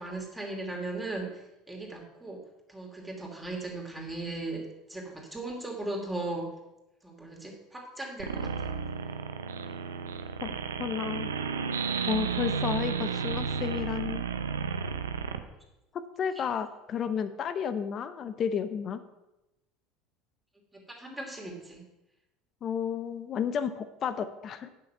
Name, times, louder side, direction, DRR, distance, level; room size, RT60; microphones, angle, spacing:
voice 1, 0.0-2.4 2.7-6.5 7.0-8.7 16.4-16.5 20.7-21.8, right 2 dB, 10° right, 0 dB, 2.7 m, -38 dB
sound 1, 8.2-15.4, right 6 dB, 85° right, 0.6 m, -32 dB
voice 2, 10.4-11.3 12.1-14.3 15.9-19.0 22.6-24.7, left 7 dB, 45° left, 12 dB, 0.7 m, -32 dB
9.1 x 6.8 x 5.7 m, 0.94 s
hypercardioid pair, 75°, 0 cm